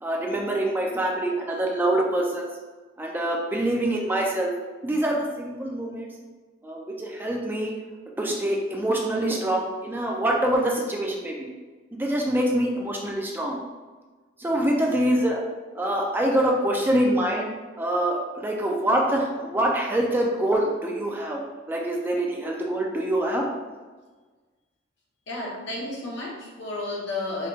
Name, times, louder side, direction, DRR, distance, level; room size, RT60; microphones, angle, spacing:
voice 1, 0.0-2.5 3.0-4.5 4.8-6.1 6.6-7.7 8.2-11.5 11.9-13.6 14.4-15.4 15.7-17.5 17.8-21.4 21.7-23.4, right 1 dB, 10° right, -1 dB, 0.4 m, -25 dB
voice 2, 25.3-27.5, left 2 dB, 65° left, -3 dB, 0.9 m, -32 dB
4.9 x 2.2 x 2.7 m, 1.3 s
head